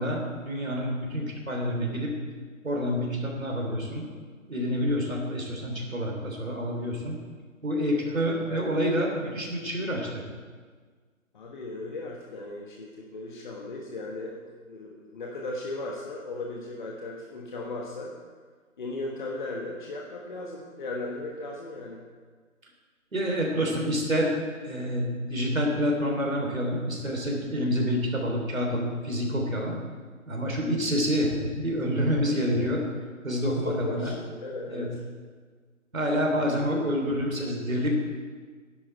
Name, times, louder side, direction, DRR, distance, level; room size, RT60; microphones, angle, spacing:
voice 1, 0.0-2.1 2.6-4.1 4.5-7.2 7.6-10.2 23.1-24.4 24.6-29.8 30.3-32.8 33.2-34.1 34.7-34.9 35.9-38.0, equal, 75° right, 0 dB, 3.3 m, -28 dB
voice 2, 8.0-8.8 11.3-18.1 18.8-22.0 32.1-32.2 33.5-35.0, left 2 dB, 35° left, -1 dB, 1.2 m, -37 dB
12.5 x 11.0 x 4.5 m, 1.5 s
figure-of-eight pair, 145°, 41 cm